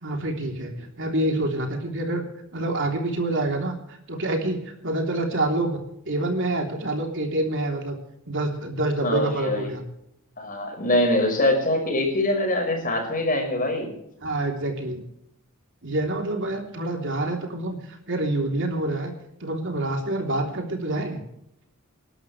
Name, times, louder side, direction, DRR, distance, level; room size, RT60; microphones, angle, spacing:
voice 1, 0.0-2.2 2.5-4.6 4.8-5.8 6.0-8.0 8.3-9.8 14.2-15.0 15.8-19.1 19.4-21.2, right 1 dB, 60° right, 2 dB, 3.3 m, -27 dB
voice 2, 9.0-9.7 10.4-13.9, left 1 dB, 40° left, 2 dB, 5.7 m, -23 dB
27.5 x 12.0 x 3.3 m, 0.78 s
head